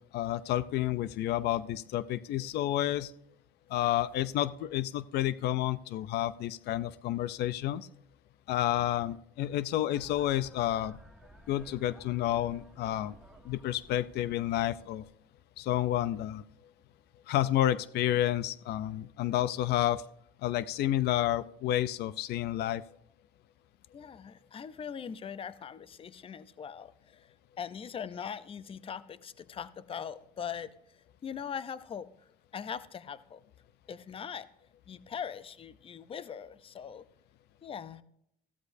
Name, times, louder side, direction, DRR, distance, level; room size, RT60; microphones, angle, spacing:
voice 1, 0.1-3.1 3.7-7.9 8.5-11.0 11.5-13.1 13.4-15.0 15.6-16.4 17.3-20.0 20.4-22.8, left 13 dB, 75° left, 16 dB, 0.5 m, -30 dB
sound 1, 9.9-15.1, right 1 dB, 5° right, 1.4 m, -55 dB
voice 2, 23.9-30.7 31.2-32.1 32.5-33.4 33.9-34.5 34.9-37.1 37.6-38.0, left 7 dB, 35° left, 15 dB, 0.6 m, -41 dB
15.0 x 13.0 x 2.7 m, 0.71 s
cardioid pair, 110°, 17 cm